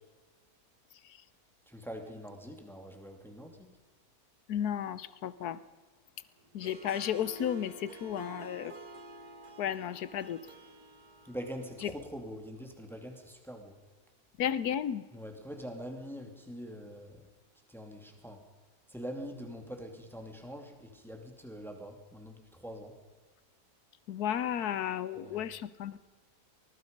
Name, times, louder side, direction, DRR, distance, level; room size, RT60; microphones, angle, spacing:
voice 1, 1.7-3.7 11.2-13.7 15.1-17.2 17.7-18.4 18.9-22.9 25.2-25.4, equal, ahead, 3 dB, 2.5 m, -44 dB
voice 2, 4.5-5.6 6.5-8.7 9.6-10.4 11.8-11.9 14.4-15.0 24.1-26.0, left 9 dB, 80° left, 16 dB, 1.4 m, -33 dB
Harp, 6.5-11.9, right 2 dB, 75° right, 2.0 m, -49 dB
24.0 x 20.5 x 5.3 m, 1.3 s
omnidirectional pair, 1.6 m